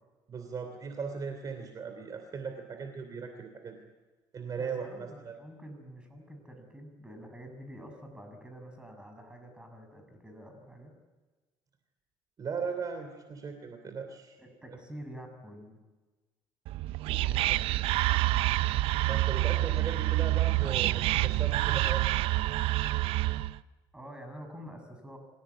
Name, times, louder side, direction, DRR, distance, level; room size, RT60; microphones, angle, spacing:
voice 1, 0.3-3.8 4.3-5.3 12.4-14.4 19.0-22.0, right 5 dB, 40° right, 6 dB, 3.0 m, -38 dB
voice 2, 4.6-11.0 14.4-15.8 17.1-18.0 23.9-25.2, equal, 10° right, 5 dB, 6.9 m, -47 dB
Whispering, 16.7-23.6, right 17 dB, 75° right, 0.7 m, -27 dB
27.0 x 17.0 x 8.4 m, 1.2 s
cardioid pair, 105°, 10 cm